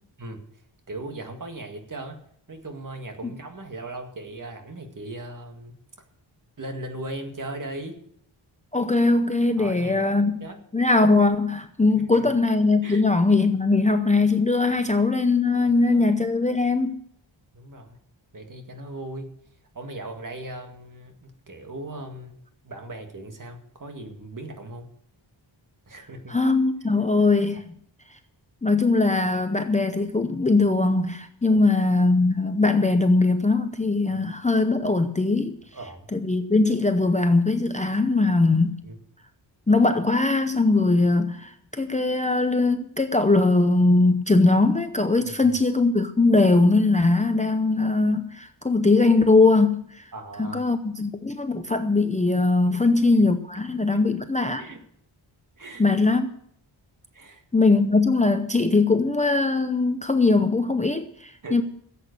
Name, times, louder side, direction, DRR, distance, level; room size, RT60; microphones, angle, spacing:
voice 1, 0.9-2.2 2.5-5.8 6.6-8.0 9.6-10.6 12.1-12.3 12.8-13.0 15.6-16.0 17.5-18.0 18.3-19.3 19.7-22.4 22.6-24.9 25.9-26.4 31.5-31.6 34.1-34.2 35.7-36.1 38.8-39.0 45.3-45.5 50.1-50.6 52.7-52.8 53.1-53.2 53.9-54.0 54.6-54.8 55.6-55.8 57.1-57.4 61.4-61.6, right 2 dB, 40° right, 2.0 m, -38 dB
voice 2, 8.7-10.4 10.7-17.0 26.3-27.7 28.6-35.6 36.1-38.8 39.7-50.0 50.4-54.6 55.8-56.3 57.5-61.6, left 3 dB, 15° left, 0.7 m, -21 dB
15.0 x 8.1 x 6.6 m
wide cardioid pair, 130°, 46 cm